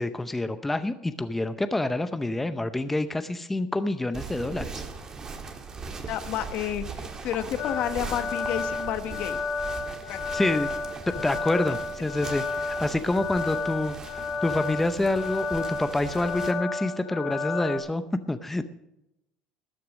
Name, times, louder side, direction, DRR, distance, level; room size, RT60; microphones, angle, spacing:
voice 1, 0.0-4.8 10.3-10.7 11.1-18.6, left 2 dB, 10° left, 10 dB, 0.6 m, -27 dB
sound 1, 4.1-16.5, right 4 dB, 25° right, 1.6 m, -39 dB
voice 2, 6.1-9.4 10.1-10.2, left 11 dB, 60° left, 11 dB, 1.0 m, -30 dB
sound 2, 7.6-17.8, left 4 dB, 80° left, 2.4 m, -32 dB
13.0 x 9.4 x 6.0 m, 0.87 s
cardioid pair, 125°, 2 cm